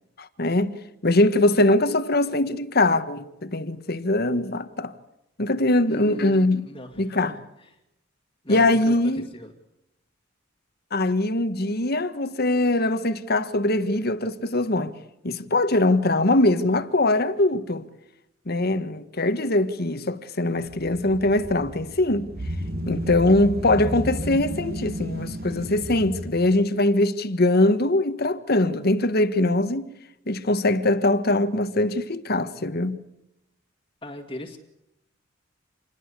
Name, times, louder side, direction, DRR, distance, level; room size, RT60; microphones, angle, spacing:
voice 1, 0.2-0.7 1.0-4.9 5.4-6.7 7.0-7.4 8.5-9.3 10.9-14.9 15.2-17.8 18.5-22.3 22.9-29.9 30.3-33.0, left 2 dB, 55° left, 1.6 m, -22 dB
voice 2, 5.9-7.2 8.4-9.0 9.3-9.5 34.0-34.6, left 1 dB, 25° left, 2.2 m, -38 dB
sound 1, 20.6-26.3, right 1 dB, 55° right, 2.7 m, -33 dB
27.5 x 21.0 x 8.4 m
head